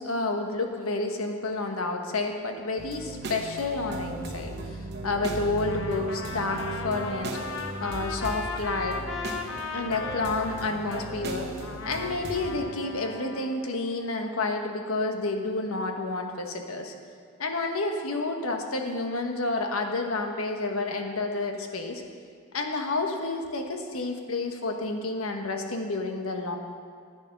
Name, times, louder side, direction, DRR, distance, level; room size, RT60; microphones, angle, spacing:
voice 1, 0.0-7.4 7.8-9.0 9.7-11.5 11.8-16.9 17.4-22.0 22.5-26.6, left 3 dB, 90° left, 4 dB, 1.2 m, -30 dB
sound 1, 2.8-12.6, right 2 dB, 50° right, 1.1 m, -36 dB
Trumpet, 5.6-11.1 11.6-13.6, left 4 dB, 65° left, 0.9 m, -37 dB
10.5 x 9.1 x 5.9 m, 2.2 s
head